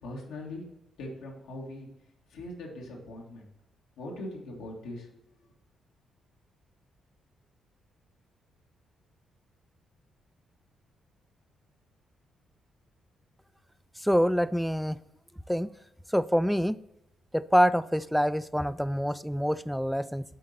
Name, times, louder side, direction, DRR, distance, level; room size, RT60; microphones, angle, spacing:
voice 1, 0.0-0.6 1.0-1.9 2.3-3.4 4.0-5.1, left 1 dB, 85° left, -2 dB, 1.7 m, -40 dB
voice 2, 14.0-15.0 15.5-15.7 16.1-16.8 17.3-20.2, equal, ahead, 15 dB, 0.4 m, -26 dB
7.5 x 3.8 x 4.1 m, 0.84 s
supercardioid pair, 55°, 0 cm